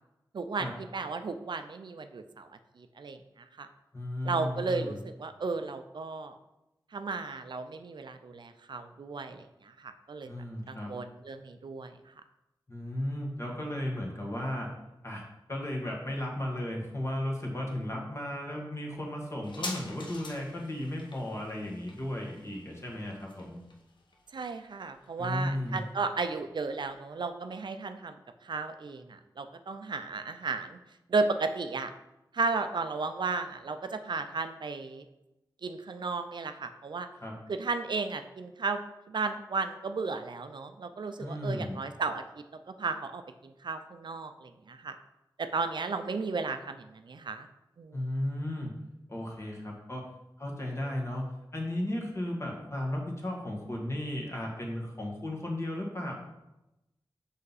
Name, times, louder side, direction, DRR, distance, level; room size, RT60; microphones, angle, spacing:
voice 1, 0.3-2.5 2.8-3.2 3.6-3.7 4.2-6.4 6.9-10.3 10.7-11.9 24.3-28.2 28.4-30.8 31.1-31.9 32.3-35.1 35.6-37.1 37.5-38.8 39.1-42.2 42.8-45.0 45.4-47.5 47.8-48.0, right 4 dB, 70° right, 8 dB, 0.5 m, -34 dB
voice 2, 3.9-5.0 10.2-10.9 12.7-14.7 15.0-15.2 15.5-23.6 25.2-25.8 37.2-37.4 41.2-41.8 47.9-48.7 49.1-50.0 50.4-51.2 51.5-56.1, left 1 dB, 35° left, -1 dB, 1.6 m, -35 dB
sound 1, 19.4-26.5 26.8-26.9, left 2 dB, 75° left, 0.9 m, -46 dB
5.7 x 5.3 x 4.1 m, 0.94 s
wide cardioid pair, 75°, 8 cm